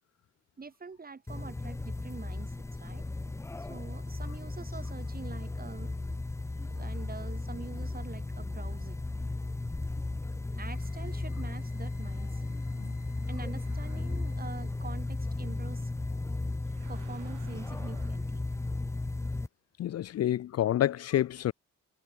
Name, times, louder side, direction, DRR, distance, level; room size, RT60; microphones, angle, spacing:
voice 1, 0.6-3.0 3.6-5.9 6.7-9.1 10.6-12.5 13.3-15.9 16.9-18.5, right 4 dB, 30° right, 4.0 m, -45 dB
sound 1, 1.3-19.5, left 2 dB, 10° left, 0.5 m, -35 dB
Wind instrument woodwind instrument, 10.6-14.8, left 4 dB, 30° left, 6.2 m, -62 dB
sound 2, 13.5-14.5 16.6-18.3, right 13 dB, 80° right, 7.7 m, -57 dB
voice 2, 19.8-21.5, left 12 dB, 55° left, 0.7 m, -28 dB
cardioid pair, 90°, 30 cm